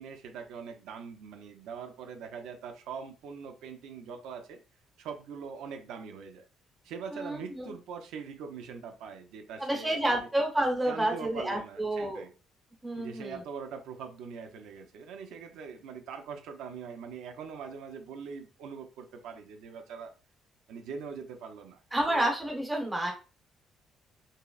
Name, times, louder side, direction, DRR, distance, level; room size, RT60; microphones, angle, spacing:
voice 1, 0.0-4.6 5.0-6.4 6.8-10.3 10.9-12.3 13.0-20.1 20.7-21.8 22.1-22.3, right 6 dB, 90° right, 5 dB, 0.6 m, -42 dB
voice 2, 7.1-7.7 9.6-12.2 12.8-13.4 21.9-23.1, right 1 dB, 10° right, 1 dB, 0.9 m, -29 dB
5.3 x 2.0 x 2.3 m, 0.33 s
cardioid pair, 150°, 0 cm